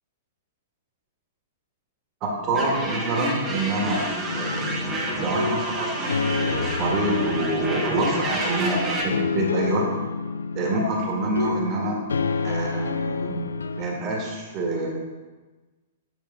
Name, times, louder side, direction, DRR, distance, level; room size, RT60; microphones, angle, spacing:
voice 1, 2.2-4.9 5.2-9.8 10.5-12.0 12.4-13.4 13.8-14.9, right 1 dB, 35° right, -1 dB, 2.0 m, -26 dB
sound 1, 2.5-9.0, right 2 dB, 20° right, 1.4 m, -30 dB
sound 2, 4.2-13.8, left 4 dB, 80° left, 0.4 m, -29 dB
8.5 x 5.9 x 3.7 m, 1.2 s
figure-of-eight pair, 110°, 0 cm